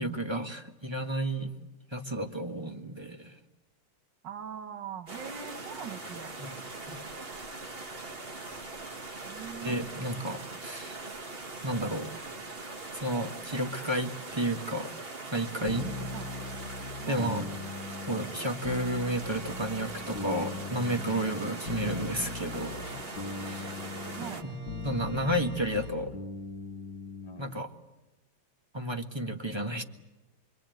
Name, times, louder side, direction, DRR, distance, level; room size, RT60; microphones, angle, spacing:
voice 1, 0.0-1.5 1.9-3.4 6.4-6.5 6.9-7.0 9.6-11.0 11.6-12.1 12.9-14.9 15.3-15.9 17.1-17.5 18.1-22.8 23.4-23.7 24.2-24.6 24.8-26.1 27.4-27.7 28.7-29.8, right 1 dB, 15° right, 5 dB, 1.3 m, -32 dB
voice 2, 4.2-6.3 9.3-9.9 16.1-16.4 17.0-17.3 24.2-24.5, right 8 dB, 65° right, 8 dB, 2.1 m, -42 dB
sound 1, 5.1-24.4, right 3 dB, 30° right, 1.7 m, -41 dB
sound 2, 15.7-27.5, left 4 dB, 60° left, 1.9 m, -40 dB
Organ, 19.1-25.9, right 1 dB, 85° right, 4.8 m, -47 dB
26.0 x 24.5 x 9.2 m, 1.1 s
omnidirectional pair, 2.2 m